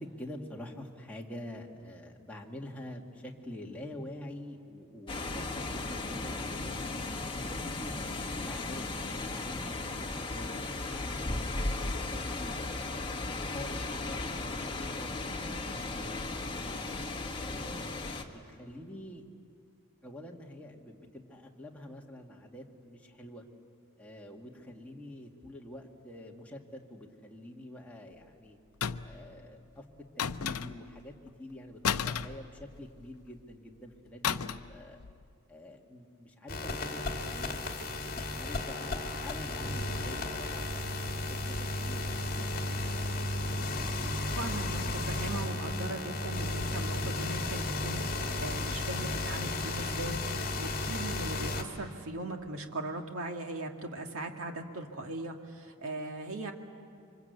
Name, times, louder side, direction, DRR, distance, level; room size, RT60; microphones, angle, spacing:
voice 1, 0.0-6.9 7.3-12.8 13.3-16.8 17.4-19.2 20.0-23.4 24.0-28.6 29.0-29.9 30.2-31.1 31.4-35.0 35.5-37.6 38.0-43.5, left 1 dB, 5° left, -2 dB, 2.0 m, -47 dB
sound 1, 5.1-18.2, left 2 dB, 20° left, 1.6 m, -36 dB
sound 2, 28.8-29.3 30.2-31.0 31.8-33.0 34.2-34.8 35.0-35.2, left 7 dB, 75° left, 0.7 m, -33 dB
sound 3, 36.5-51.6, left 2 dB, 40° left, 2.4 m, -34 dB
voice 2, 44.3-56.5, right 2 dB, 65° right, 3 dB, 2.1 m, -39 dB
28.0 x 25.0 x 8.2 m, 2.3 s
head